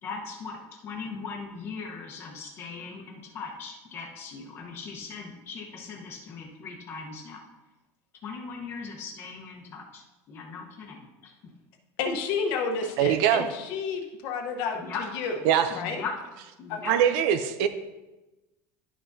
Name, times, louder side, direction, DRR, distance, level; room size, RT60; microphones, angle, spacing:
voice 1, 0.0-7.4 8.2-11.5 13.3-13.4 14.7-15.1 15.7-16.2 16.6-17.0, left 5 dB, 30° left, 1 dB, 1.0 m, -39 dB
voice 2, 12.0-14.8 15.1-15.4 15.7-16.0 16.7-16.8, left 5 dB, 55° left, 3 dB, 1.0 m, -30 dB
voice 3, 13.0-13.4 15.5-15.7 16.9-17.7, right 9 dB, 55° right, 10 dB, 0.5 m, -22 dB
11.5 x 5.8 x 2.7 m, 1.1 s
cardioid pair, 175°, 9 cm